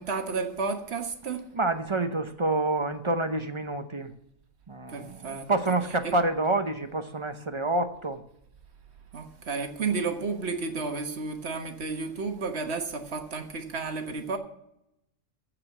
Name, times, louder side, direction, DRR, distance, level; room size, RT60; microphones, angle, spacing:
voice 1, 0.0-1.4 4.9-5.5 6.0-6.1 9.1-14.4, right 4 dB, 55° right, 1.5 m, -32 dB
voice 2, 1.5-4.1 4.7-8.2, right 2 dB, 30° right, 0.7 m, -28 dB
15.0 x 5.0 x 7.3 m
omnidirectional pair, 1.3 m